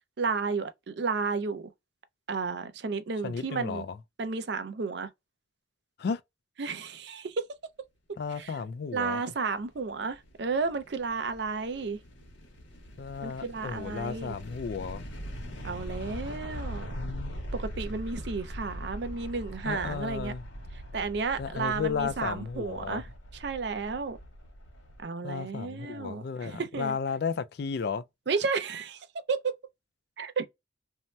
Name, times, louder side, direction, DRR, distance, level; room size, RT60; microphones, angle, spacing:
voice 1, 0.2-1.7 2.3-3.9 4.2-5.1 6.6-7.4 8.3-8.6 8.9-12.0 13.2-14.4 15.6-16.9 17.5-20.3 20.9-23.1 23.3-24.2 25.0-27.0 28.3-29.5 30.2-30.5, right 4 dB, 60° right, 0.5 m, -32 dB
voice 2, 3.2-3.9 6.0-6.2 8.2-9.2 13.0-15.0 17.0-17.3 19.7-20.4 21.4-23.0 25.2-28.0, left 5 dB, 55° left, 0.3 m, -34 dB
sound 1, 9.5-25.0, equal, 75° left, 0.9 m, -41 dB
2.7 x 2.0 x 3.2 m
head